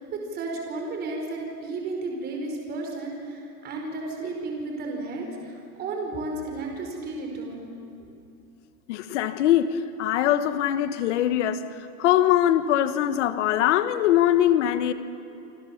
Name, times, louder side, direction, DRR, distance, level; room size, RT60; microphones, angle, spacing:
voice 1, 0.0-7.7, right 2 dB, 20° right, 1 dB, 4.8 m, -33 dB
voice 2, 8.9-11.6 12.0-14.9, left 11 dB, 50° left, 11 dB, 1.3 m, -22 dB
28.0 x 27.0 x 7.2 m, 2.7 s
supercardioid pair, 165°, 46 cm